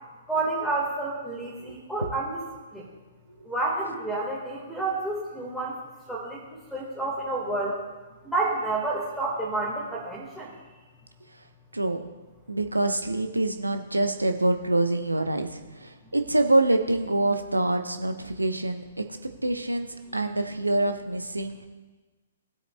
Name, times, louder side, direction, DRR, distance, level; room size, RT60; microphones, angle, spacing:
voice 1, 0.3-2.4 2.7-2.8 3.5-5.8 6.1-7.8 8.2-10.5, right 2 dB, ahead, -5 dB, 1.7 m, -29 dB
voice 2, 1.6-2.1 3.4-3.5 11.7-12.0 12.5-18.8 19.4-19.9 20.1-21.7, right 2 dB, 85° right, 7 dB, 0.9 m, -25 dB
17.5 x 8.2 x 2.3 m, 1.2 s
figure-of-eight pair, 120°, 0 cm